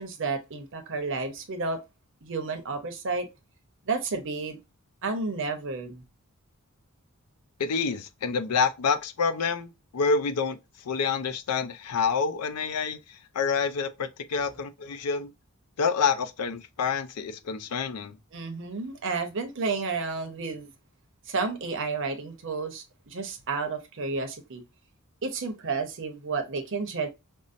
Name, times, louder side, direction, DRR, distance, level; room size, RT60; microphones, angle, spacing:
voice 1, 0.0-1.8 2.2-3.3 3.8-4.6 5.0-6.0 18.3-20.7 21.3-24.6 25.2-27.1, right 4 dB, 60° right, 0.7 m, -31 dB
voice 2, 7.6-15.3 15.8-18.2, left 5 dB, 90° left, 0.5 m, -28 dB
5.3 x 2.0 x 2.5 m
head